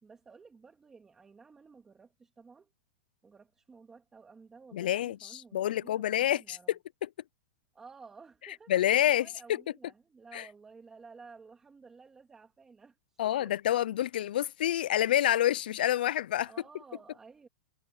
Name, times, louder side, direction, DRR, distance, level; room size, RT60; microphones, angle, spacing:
voice 1, 0.0-2.7 3.2-6.7 7.7-8.7 9.0-13.7 16.5-17.5, right 4 dB, 10° right, 2.3 m, -54 dB
voice 2, 4.7-7.1 8.7-9.3 10.3-10.4 13.2-16.5, left 12 dB, 75° left, 0.4 m, -28 dB
supercardioid pair, 170°, 5 cm